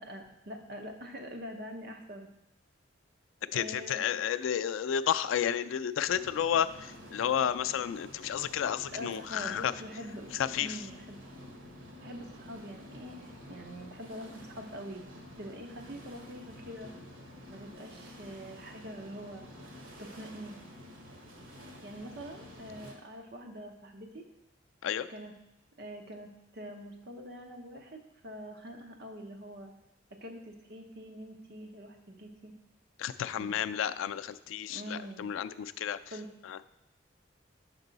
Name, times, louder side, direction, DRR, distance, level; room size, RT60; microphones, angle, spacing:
voice 1, 0.0-2.3 3.5-4.0 8.9-11.2 12.0-15.0 15.4-16.9 17.5-19.4 20.0-20.6 21.8-24.2 25.1-25.3 25.8-29.7 30.2-32.5 33.4-33.5 34.7-35.3 36.1-36.3, equal, 55° right, 3 dB, 0.8 m, -44 dB
voice 2, 3.5-9.7 10.3-10.8 24.8-25.1 33.0-36.0 36.4-36.6, left 9 dB, 85° left, 12 dB, 0.3 m, -31 dB
sound 1, 6.0-22.9, left 1 dB, 85° right, 1.2 m, -50 dB
6.1 x 5.4 x 3.9 m, 0.85 s
head